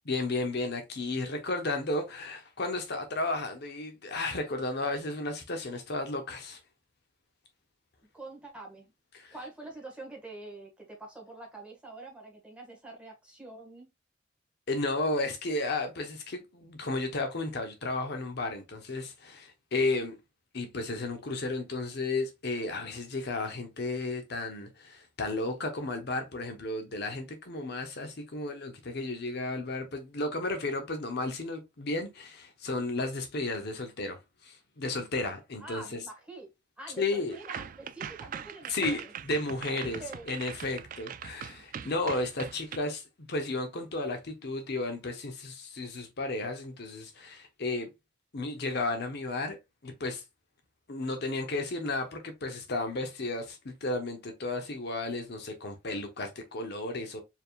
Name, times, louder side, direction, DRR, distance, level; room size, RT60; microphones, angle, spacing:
voice 1, 0.0-6.6 9.1-9.3 14.7-20.2 20.5-36.0 37.0-37.4 38.7-40.0 40.3-47.9 48.3-49.6 49.8-50.2 50.9-57.2, left 2 dB, 55° left, 0.8 m, -33 dB
voice 2, 8.1-8.9 9.3-13.9 35.6-36.5 36.8-39.1 39.7-40.2, right 2 dB, 5° right, 1.7 m, -45 dB
sound 1, 37.3-42.8, right 8 dB, 45° right, 0.3 m, -41 dB
4.5 x 3.5 x 2.4 m
head